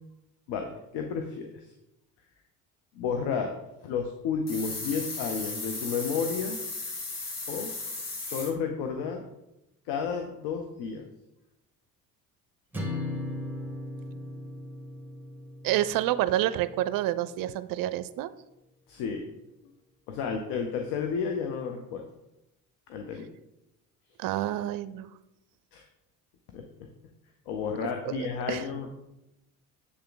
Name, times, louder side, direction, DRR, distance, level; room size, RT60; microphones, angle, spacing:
voice 1, 0.5-1.6 2.9-3.5 3.8-6.6 7.5-7.7 8.2-9.2 9.9-11.1 18.9-19.3 20.1-22.0 22.9-23.3 25.7-25.8 26.5-26.6 27.5-28.9, left 6 dB, 75° left, 4 dB, 0.8 m, -32 dB
sound 1, 4.5-8.5, left 3 dB, 40° left, 1.5 m, -36 dB
sound 2, 12.7-17.1, left 2 dB, 5° right, 1.5 m, -38 dB
voice 2, 15.6-18.3 24.2-25.1 28.1-28.6, right 13 dB, 55° right, 14 dB, 0.5 m, -28 dB
7.9 x 3.5 x 3.8 m, 0.92 s
hypercardioid pair, 65°, 41 cm